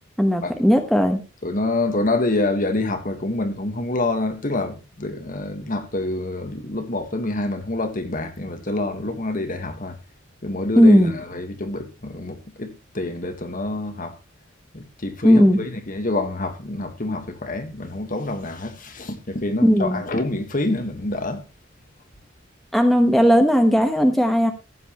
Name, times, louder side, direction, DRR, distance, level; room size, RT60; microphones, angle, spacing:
voice 1, 0.2-1.2 10.8-11.1 15.2-15.6 19.6-20.0 22.7-24.5, equal, ahead, 1.1 m, -16 dB
voice 2, 1.4-10.0 10.4-14.2 14.7-21.4, left 2 dB, 45° left, 1.5 m, -27 dB
15.0 x 8.0 x 3.0 m
head